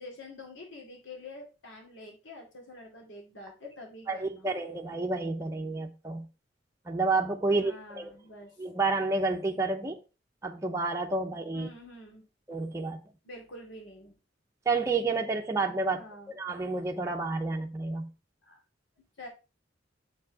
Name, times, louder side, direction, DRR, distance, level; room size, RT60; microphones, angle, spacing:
voice 1, 0.0-4.5 7.5-8.6 11.3-12.3 13.2-14.1 15.9-16.3 18.5-18.6 19.2-19.3, left 2 dB, 90° left, 2.5 m, -47 dB
voice 2, 4.1-6.3 6.9-8.1 8.6-10.0 10.4-11.7 12.5-13.0 14.7-18.1, right 3 dB, 15° right, 0.6 m, -30 dB
7.2 x 4.6 x 4.6 m
head